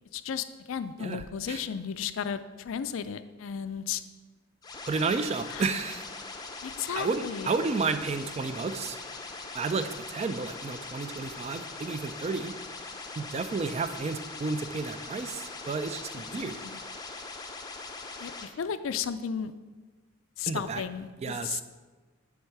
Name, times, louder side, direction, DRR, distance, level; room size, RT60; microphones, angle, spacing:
voice 1, 0.1-4.0 5.5-5.7 6.6-7.5 16.4-16.8 18.2-19.5 20.4-21.6, left 7 dB, 70° left, 12 dB, 0.4 m, -34 dB
sound 1, 4.6-18.4, left 3 dB, 20° left, 0.5 m, -41 dB
voice 2, 4.9-6.0 7.0-9.0 9.5-12.6 13.2-16.6 20.5-20.8 21.2-21.6, right 4 dB, 30° right, 11 dB, 0.3 m, -31 dB
9.5 x 3.5 x 4.6 m, 1.3 s
head